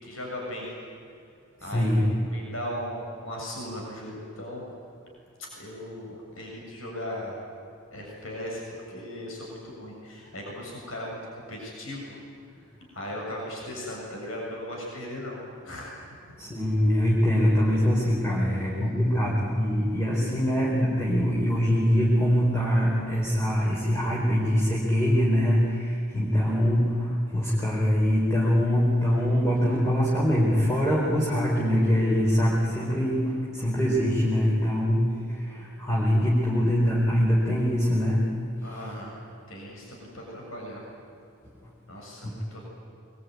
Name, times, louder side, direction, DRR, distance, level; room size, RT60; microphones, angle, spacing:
voice 1, 0.0-0.7 1.6-4.7 5.5-7.3 7.9-12.2 12.9-15.4 15.6-16.2 38.6-39.2 39.5-40.8 41.9-42.6, left 1 dB, 70° left, -2 dB, 7.3 m, -37 dB
voice 2, 1.6-2.0 16.4-38.4 38.6-39.0 42.2-42.3, equal, 15° left, -6 dB, 4.3 m, -23 dB
25.0 x 22.5 x 9.5 m, 2.6 s
head